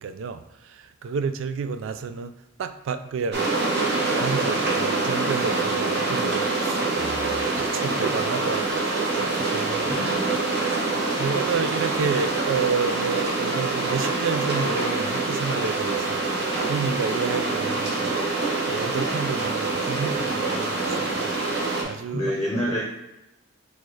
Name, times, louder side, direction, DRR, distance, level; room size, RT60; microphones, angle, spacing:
voice 1, 0.0-2.3 2.6-3.6 4.2-10.1 10.7-10.8 11.2-22.4, right 5 dB, 70° right, 0.3 m, -30 dB
sound 1, 3.3-21.8, right 3 dB, 50° right, 0.9 m, -25 dB
voice 2, 9.9-10.5 22.1-22.9, equal, 15° left, 0.7 m, -27 dB
4.2 x 2.3 x 4.7 m
head